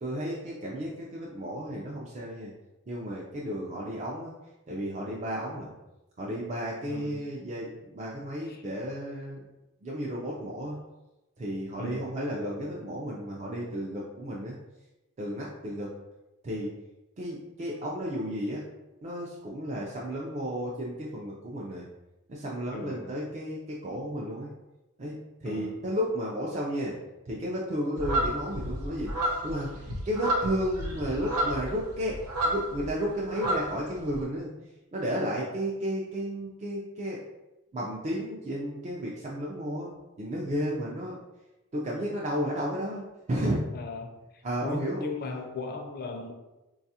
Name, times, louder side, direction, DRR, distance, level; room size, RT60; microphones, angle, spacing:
voice 1, 0.0-2.5 2.9-4.3 4.7-5.7 6.2-9.4 9.8-10.8 11.4-14.6 15.2-15.9 16.4-16.7 17.2-18.6 19.0-21.9 22.3-24.5 25.0-27.0 27.3-32.2 32.4-34.5 34.9-37.2 37.7-39.9 40.2-41.2 41.7-43.0 43.3-43.6 44.4-45.0, equal, 30° right, -4 dB, 0.4 m, -33 dB
voice 2, 6.9-7.2 8.4-8.6 11.8-12.1 22.7-23.2 25.4-25.8 43.7-46.3, left 3 dB, 45° left, 3 dB, 0.4 m, -38 dB
sound 1, 28.0-32.9 33.2-34.2, right 1 dB, 85° right, 0.7 m, -31 dB
4.0 x 2.4 x 2.7 m, 1.0 s
head